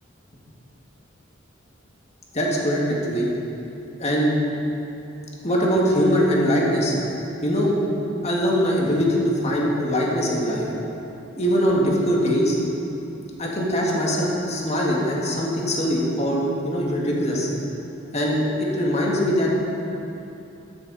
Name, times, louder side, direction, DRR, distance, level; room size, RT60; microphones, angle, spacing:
voice 1, 2.3-3.3 4.0-4.4 5.4-6.9 7.4-7.8 8.2-10.7 11.4-12.6 13.4-17.5 18.1-19.5, equal, 35° left, -3 dB, 2.0 m, -22 dB
12.5 x 10.5 x 4.2 m, 2.8 s
head